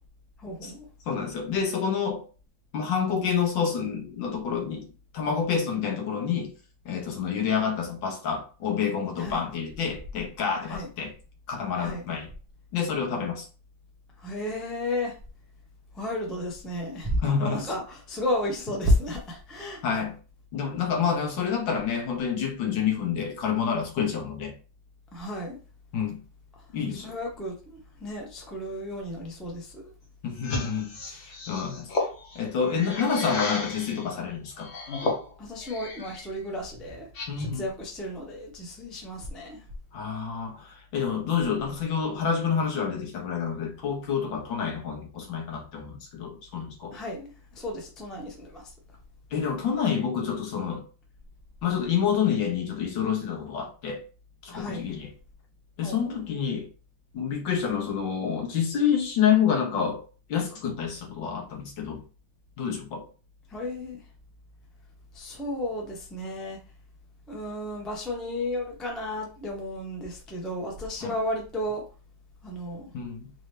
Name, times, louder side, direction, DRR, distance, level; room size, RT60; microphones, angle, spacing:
voice 1, 0.4-0.9 9.1-9.4 10.6-10.9 11.7-12.0 14.2-15.2 15.9-19.8 25.1-25.6 26.6-29.9 31.5-31.6 35.4-39.7 46.9-48.7 54.5-54.9 55.8-56.2 63.5-64.1 65.1-66.6 67.3-71.8 72.4-72.9, left 1 dB, ahead, 0.4 m, -33 dB
voice 2, 1.1-2.2 2.7-4.8 5.1-6.5 6.8-11.1 11.5-12.3 12.7-13.5 17.2-17.7 19.8-20.1 20.5-24.5 25.9-26.2 26.7-27.1 30.2-31.9 32.3-34.7 37.3-37.6 39.9-47.0 49.3-50.8 51.6-54.0 54.4-55.1 55.8-56.7 57.1-60.0 60.3-62.0 62.6-63.0 71.0-71.1 72.9-73.3, left 7 dB, 80° left, 1.7 m, -28 dB
sound 1, 30.4-34.1 34.6-36.3 36.6-37.7, left 3 dB, 50° left, 1.2 m, -34 dB
3.9 x 2.8 x 3.2 m
omnidirectional pair, 2.0 m